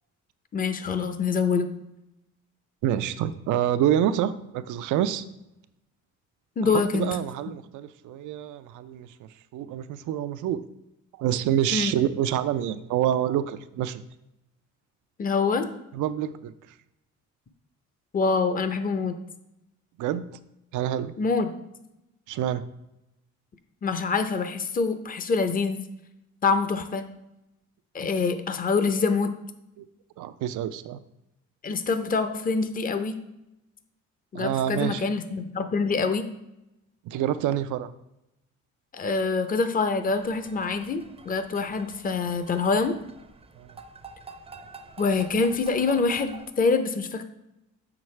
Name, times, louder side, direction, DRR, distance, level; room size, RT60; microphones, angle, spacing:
voice 1, 0.5-1.7 6.6-7.1 11.7-11.9 15.2-15.7 18.1-19.1 21.2-21.5 23.8-25.8 26.4-27.1 27.9-29.3 31.6-33.2 34.3-36.3 38.9-42.9 45.0-47.2, left 4 dB, 30° left, 9 dB, 0.6 m, -25 dB
voice 2, 2.8-5.2 6.6-10.6 11.1-14.0 15.9-16.5 20.0-20.2 20.7-21.1 22.3-22.6 29.8-29.9 30.2-31.0 34.3-35.0 37.0-37.9 43.6-43.8, right 11 dB, 80° right, 12 dB, 0.5 m, -27 dB
sound 1, 40.0-46.5, right 4 dB, 20° right, 0.5 m, -47 dB
7.0 x 6.0 x 3.2 m, 0.88 s
cardioid pair, 90°, 30 cm